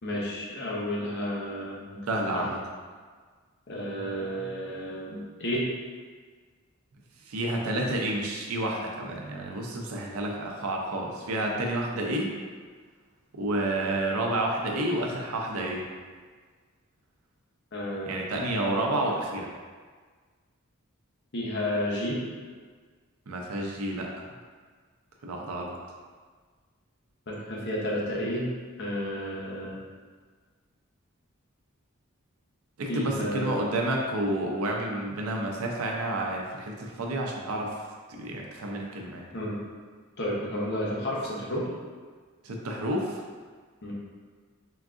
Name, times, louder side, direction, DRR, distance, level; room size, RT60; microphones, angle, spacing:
voice 1, 0.0-2.4 3.7-5.6 17.7-18.2 21.3-22.2 27.3-28.5 28.8-29.8 32.9-33.6 39.3-39.6 40.2-41.6 43.8-43.9, equal, 55° left, -4 dB, 0.9 m, -31 dB
voice 2, 2.1-2.6 7.3-12.3 13.3-15.9 18.1-19.5 23.3-24.3 25.2-25.8 32.8-37.7 38.1-39.3 42.4-43.2, right 1 dB, 90° right, 0 dB, 0.5 m, -30 dB
3.8 x 3.5 x 2.5 m, 1.5 s
head